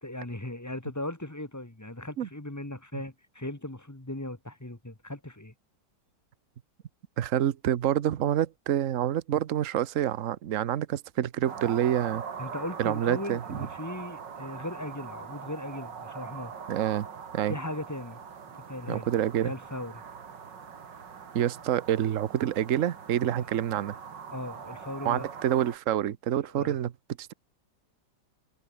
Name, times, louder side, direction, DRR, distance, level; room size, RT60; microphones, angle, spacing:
voice 1, 0.0-5.5 12.4-16.5 17.4-18.2 18.5-19.1 19.4-20.0 23.4-23.5 24.3-25.3 26.5-26.8, left 1 dB, 10° left, 1.8 m, -38 dB
voice 2, 7.2-12.2 12.8-13.4 16.7-17.1 17.3-17.5 18.9-19.5 21.3-24.0 25.0-26.9 27.2-27.3, right 11 dB, 55° right, 1.1 m, -27 dB
sound 1, 11.4-25.8, right 6 dB, 85° right, 2.7 m, -42 dB
omnidirectional pair, 1.9 m